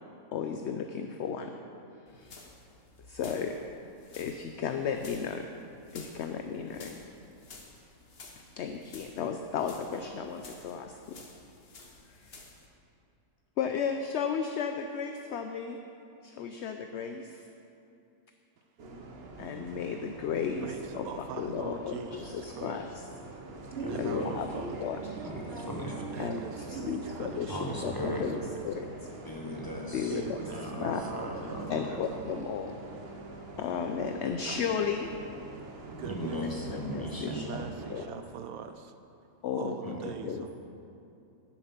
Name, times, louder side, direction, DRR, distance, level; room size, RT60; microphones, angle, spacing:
voice 1, 0.3-1.5 2.1-2.4 3.1-3.5 4.2-5.5 5.9-7.0 8.4-11.2 13.6-15.8 16.2-17.5 19.4-20.7 20.9-21.1 21.3-22.9 23.9-25.0 26.2-26.4 26.7-28.4 28.6-28.9 29.9-30.4 30.8-31.0 31.7-32.8 33.6-35.1 36.7-37.6 37.9-38.0 39.4-40.0 40.2-40.5, left 7 dB, 65° left, 6 dB, 0.7 m, -34 dB
sound 1, 2.1-12.7, left 3 dB, 45° left, 1.3 m, -52 dB
Bus, 18.8-38.1, right 3 dB, 50° right, 1.1 m, -43 dB
voice 2, 20.6-22.8 23.9-24.7 26.1-28.6 30.1-32.4 34.4-34.6 35.8-36.4 37.2-38.9 39.5-40.5, right 8 dB, 80° right, 8 dB, 1.0 m, -43 dB
voice 3, 23.8-24.4 25.1-26.2 27.5-28.2 29.2-31.9 35.9-37.5 39.8-40.4, equal, 15° left, -1 dB, 1.1 m, -38 dB
11.0 x 7.4 x 5.8 m, 2.7 s
omnidirectional pair, 1.5 m